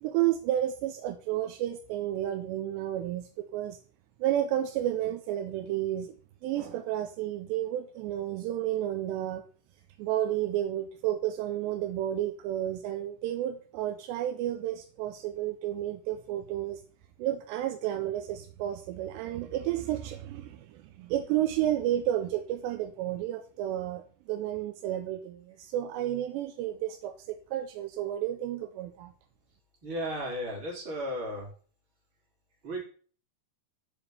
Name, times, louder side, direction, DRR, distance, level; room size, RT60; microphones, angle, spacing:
voice 1, 0.0-3.8 4.2-6.2 6.4-9.4 10.0-16.8 17.2-29.1, right 12 dB, 85° right, 6 dB, 2.9 m, -31 dB
voice 2, 29.8-31.5 32.6-32.8, equal, 30° right, -3 dB, 3.3 m, -34 dB
6.8 x 5.2 x 6.9 m, 0.42 s
omnidirectional pair, 5.0 m